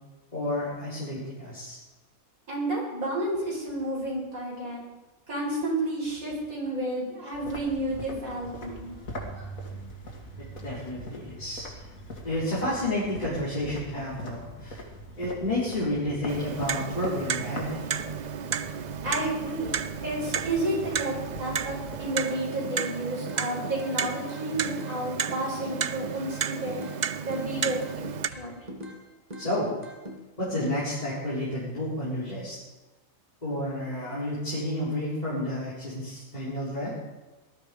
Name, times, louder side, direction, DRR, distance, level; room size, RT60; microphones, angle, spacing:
voice 1, 0.3-1.8 10.6-11.8 12.2-14.8 15.2-17.8 29.4-29.7 30.4-32.6 33.4-36.9, left 1 dB, 30° left, -10 dB, 4.5 m, -30 dB
voice 2, 2.5-4.8 5.3-9.5 19.0-19.8 20.0-26.8 27.2-28.6, right 1 dB, 85° right, -4 dB, 6.0 m, -31 dB
sound 1, 7.3-22.1, equal, 85° left, 2.7 m, -42 dB
Clock, 16.3-28.3, right 7 dB, 70° right, 0.4 m, -33 dB
sound 2, 22.3-23.0 23.3-25.0 25.3-27.0 27.3-29.0 29.3-30.2, equal, 30° right, 1.9 m, -41 dB
19.0 x 12.0 x 5.2 m, 1.1 s
omnidirectional pair, 1.4 m